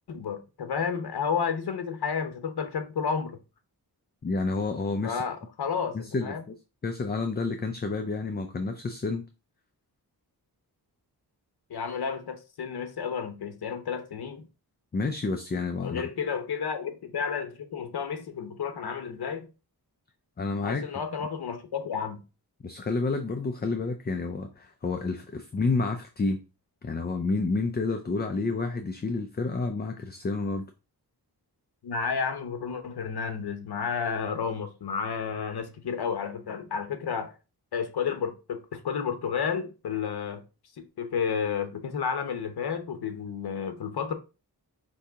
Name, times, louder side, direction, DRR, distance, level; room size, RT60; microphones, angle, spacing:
voice 1, 0.1-3.4 5.0-6.5 11.7-14.4 15.8-19.5 20.6-22.2 31.8-37.3 37.7-40.4 41.0-44.1, left 6 dB, 75° left, 0.9 m, -31 dB
voice 2, 4.2-5.2 5.9-6.3 6.8-9.2 14.9-16.1 20.4-20.9 22.6-26.4 26.8-30.7, left 3 dB, 25° left, 0.4 m, -29 dB
5.3 x 2.8 x 3.5 m
wide cardioid pair, 120°, 39 cm